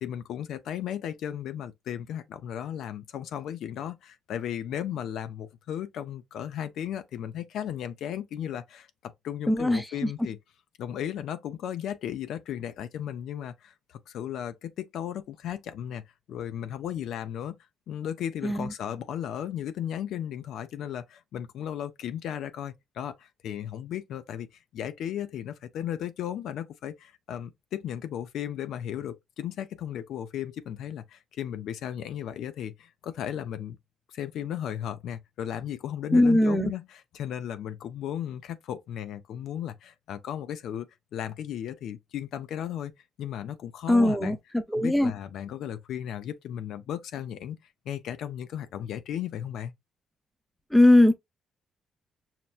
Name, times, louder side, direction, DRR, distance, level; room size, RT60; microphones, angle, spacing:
voice 1, 0.0-10.4 10.8-16.0 16.3-17.6 17.9-24.5 24.7-33.8 34.1-42.9 43.2-44.4 44.7-47.6 47.9-49.7, left 10 dB, 75° left, 0.4 m, -35 dB
voice 2, 9.5-10.1 18.4-18.7 36.1-36.7 43.9-44.4 44.7-45.1 50.7-51.1, left 1 dB, ahead, 0.5 m, -20 dB
5.6 x 2.1 x 2.3 m
cardioid pair, 90°, 0 cm